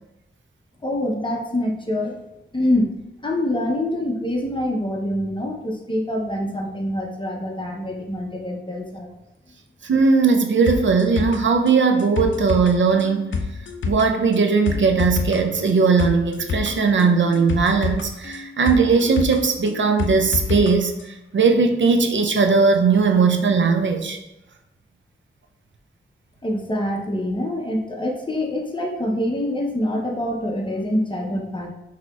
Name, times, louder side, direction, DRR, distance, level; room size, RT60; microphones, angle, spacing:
voice 1, 0.8-2.1 2.5-2.9 3.2-9.1 26.4-31.7, left 1 dB, 25° left, 0 dB, 0.7 m, -25 dB
voice 2, 9.8-13.4 13.9-24.2, right 4 dB, 65° right, 5 dB, 0.5 m, -18 dB
sound 1, 10.7-20.7 21.0-21.1, left 5 dB, 65° left, 0.5 m, -28 dB
6.0 x 2.9 x 2.3 m, 0.89 s
wide cardioid pair, 70°, 21 cm